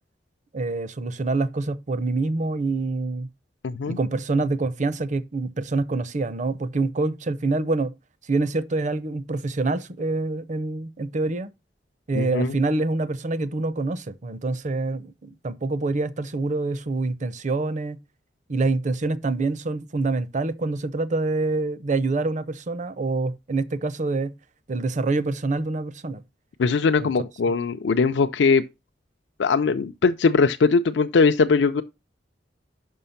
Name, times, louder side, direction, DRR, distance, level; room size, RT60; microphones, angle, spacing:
voice 1, 0.5-3.3 3.9-7.9 8.2-11.5 12.1-18.0 18.5-24.3 24.7-26.2 27.0-27.1, right 3 dB, 45° right, 0.6 m, -26 dB
voice 2, 3.6-4.0 12.1-12.5 26.6-28.6 29.4-31.8, left 4 dB, 80° left, 0.4 m, -20 dB
5.7 x 5.5 x 5.6 m
head